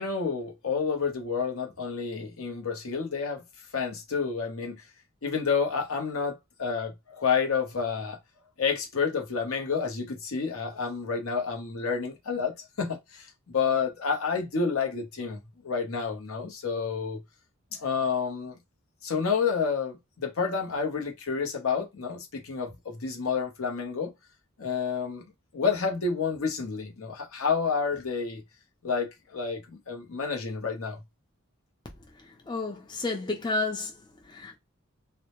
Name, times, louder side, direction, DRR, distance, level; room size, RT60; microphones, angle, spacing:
voice 1, 0.0-3.4 3.7-4.8 5.2-8.2 8.6-15.4 15.6-17.2 17.8-18.6 19.0-24.1 24.6-25.3 25.5-28.4 28.8-31.0, left 5 dB, 90° left, 0.8 m, -29 dB
voice 2, 31.8-34.6, left 3 dB, 20° left, 0.4 m, -32 dB
2.1 x 2.1 x 2.9 m
head